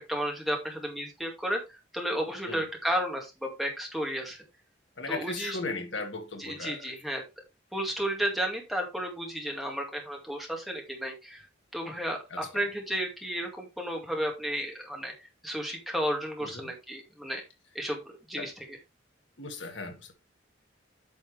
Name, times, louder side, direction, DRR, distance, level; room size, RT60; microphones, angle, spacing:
voice 1, 0.1-4.4 5.1-5.6 6.4-7.2 7.7-11.4 11.7-15.1 15.4-17.4 17.7-18.0 18.3-18.5, equal, ahead, 2.2 m, -32 dB
voice 2, 5.0-6.9 12.3-12.7 16.4-16.7 18.4-18.5 19.4-20.1, left 3 dB, 80° left, 2.0 m, -37 dB
8.8 x 6.3 x 3.4 m
head